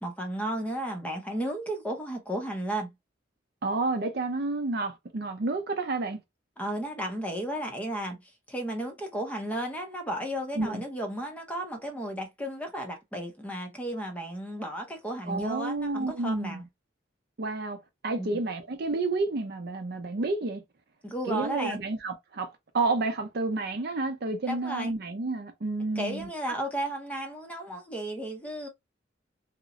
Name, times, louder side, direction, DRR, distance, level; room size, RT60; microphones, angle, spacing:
voice 1, 0.0-2.9 6.6-16.7 18.2-18.3 21.0-21.8 24.5-24.9 26.0-28.7, right 1 dB, 10° left, 0.5 m, -34 dB
voice 2, 3.6-6.2 10.6-10.8 15.3-16.7 17.4-20.6 21.3-26.3, right 3 dB, 55° right, 0.5 m, -30 dB
2.9 x 2.0 x 2.4 m
head